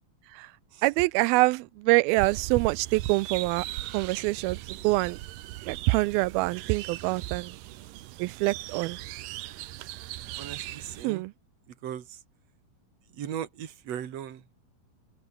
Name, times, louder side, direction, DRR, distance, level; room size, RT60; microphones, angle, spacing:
voice 1, 0.8-3.7 3.9-5.2 5.7-7.6 8.2-9.0 11.0-11.3, right 22 dB, 90° right, 2.4 m, -25 dB
sound 1, 2.2-11.1, right 15 dB, 70° right, 2.4 m, -39 dB
voice 2, 10.4-11.2 11.7-12.2 13.1-14.5, right 10 dB, 50° right, 2.7 m, -38 dB
open air
omnidirectional pair, 4.2 m